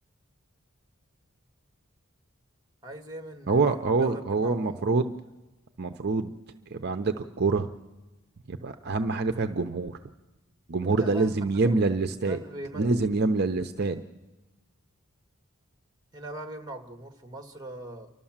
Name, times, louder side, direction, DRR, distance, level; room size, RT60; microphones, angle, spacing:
voice 1, 2.8-4.9 10.9-11.8 12.2-13.2 16.1-18.1, right 1 dB, 20° right, 5 dB, 1.7 m, -41 dB
voice 2, 3.5-5.1 5.8-6.3 6.7-7.7 8.5-10.0 10.7-12.4 12.8-14.0, right 3 dB, 50° right, 7 dB, 0.7 m, -26 dB
29.5 x 12.5 x 7.3 m, 1.1 s
head